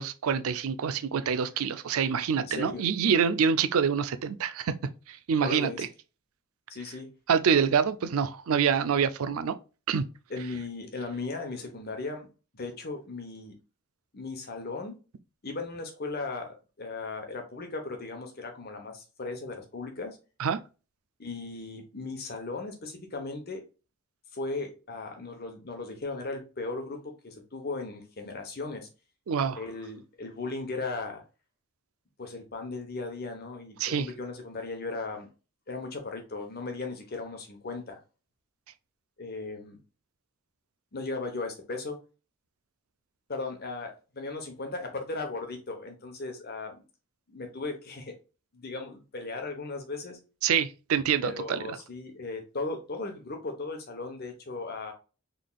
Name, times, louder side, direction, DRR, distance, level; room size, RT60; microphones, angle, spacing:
voice 1, 0.0-4.7 5.1-5.9 7.3-9.6 9.9-10.0 20.4-20.6 29.3-29.6 33.8-34.1 50.4-51.6, right 7 dB, 75° right, 0.4 m, -26 dB
voice 2, 2.4-2.9 5.4-5.8 6.7-7.1 10.3-12.3 12.5-13.5 14.1-15.0 15.4-20.2 21.2-23.6 24.3-28.9 29.5-31.2 32.2-35.3 35.7-38.0 39.2-39.8 40.9-42.0 43.3-46.8 47.3-48.2 48.5-50.2 51.2-54.9, left 3 dB, 45° left, 0.9 m, -37 dB
3.9 x 3.3 x 2.3 m
head